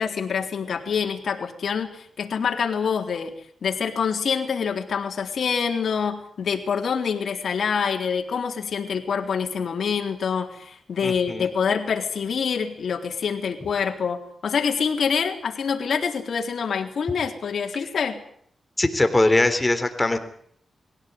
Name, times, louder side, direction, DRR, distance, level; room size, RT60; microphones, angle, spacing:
voice 1, 0.0-3.3 3.6-18.2, left 6 dB, 70° left, 3 dB, 3.8 m, -26 dB
voice 2, 11.0-11.5 18.8-20.2, left 2 dB, 20° left, 8 dB, 3.6 m, -21 dB
22.5 x 17.0 x 9.5 m, 0.66 s
cardioid pair, 75°, 0 cm